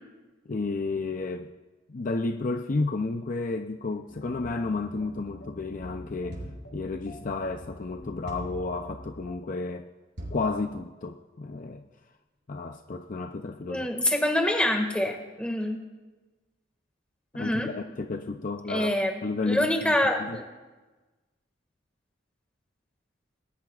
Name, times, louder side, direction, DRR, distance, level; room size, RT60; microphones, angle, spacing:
voice 1, 0.5-1.5 1.9-6.5 6.7-9.9 10.3-11.8 12.5-13.9 17.3-18.9 19.2-20.4, left 3 dB, 45° left, 5 dB, 0.6 m, -32 dB
sound 1, 4.1-9.3, left 1 dB, 65° left, 1.6 m, -45 dB
sound 2, 6.3-6.7 8.3-8.7 10.2-10.5, equal, 60° right, 4.8 m, -39 dB
voice 2, 13.7-15.8 17.3-17.7 18.7-19.2 19.5-20.4, left 1 dB, 5° left, 2 dB, 1.9 m, -26 dB
26.0 x 19.5 x 2.5 m, 1.2 s
head